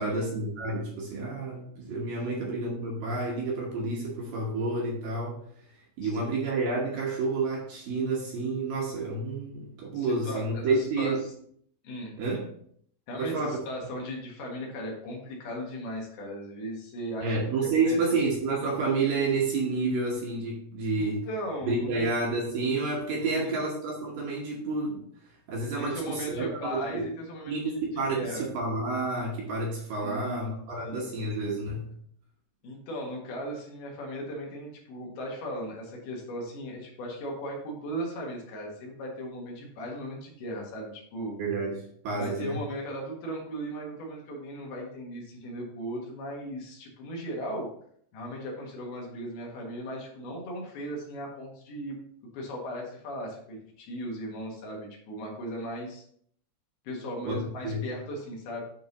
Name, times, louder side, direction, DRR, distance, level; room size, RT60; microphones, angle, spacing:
voice 1, 0.0-5.4 6.0-11.2 12.2-12.5 13.2-13.7 17.2-21.3 21.6-25.0 25.5-27.1 27.5-31.9 41.4-42.6 57.3-57.9, right 3 dB, 70° right, -2 dB, 2.4 m, -29 dB
voice 2, 9.9-11.1 11.8-12.1 13.1-18.0 21.0-22.1 23.2-23.6 25.8-27.8 28.1-28.5 30.0-30.6 30.8-31.1 32.6-41.4 42.2-47.7 48.1-52.0 52.3-56.0 56.8-58.7, equal, 70° left, -1 dB, 3.3 m, -37 dB
9.4 x 3.9 x 3.9 m, 0.64 s
omnidirectional pair, 4.9 m